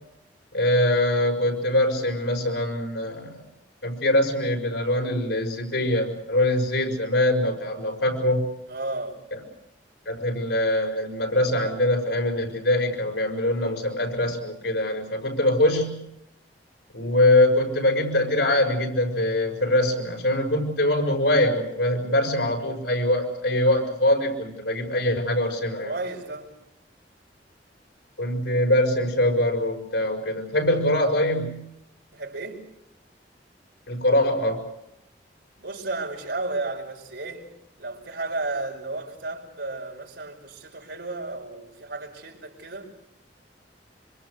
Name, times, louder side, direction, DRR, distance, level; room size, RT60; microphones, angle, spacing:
voice 1, 0.5-3.4 3.8-8.5 10.1-16.0 16.9-25.9 28.2-31.7 33.9-34.6, left 1 dB, 85° left, 5.8 m, -23 dB
voice 2, 8.7-9.2 25.7-26.5 32.1-32.7 35.6-37.5 37.8-42.9, right 2 dB, 80° right, 5.2 m, -33 dB
26.0 x 25.5 x 6.5 m
head